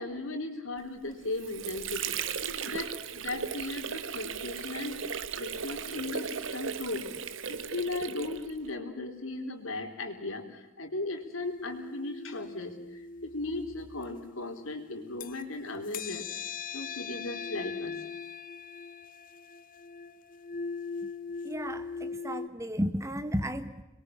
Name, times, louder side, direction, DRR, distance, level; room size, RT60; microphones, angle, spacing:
voice 1, 0.0-2.2 2.6-7.1 7.5-12.8 13.2-16.3 16.7-17.9, left 2 dB, 85° left, 5 dB, 4.1 m, -37 dB
Water / Sink (filling or washing), 1.1-8.7, right 7 dB, 70° right, 1.3 m, -36 dB
sound 1, 11.4-15.4 15.8-22.5, left 5 dB, 45° left, 0.9 m, -40 dB
voice 2, 21.4-23.8, equal, 15° right, 11 dB, 1.3 m, -33 dB
26.0 x 22.5 x 7.4 m, 1.0 s
head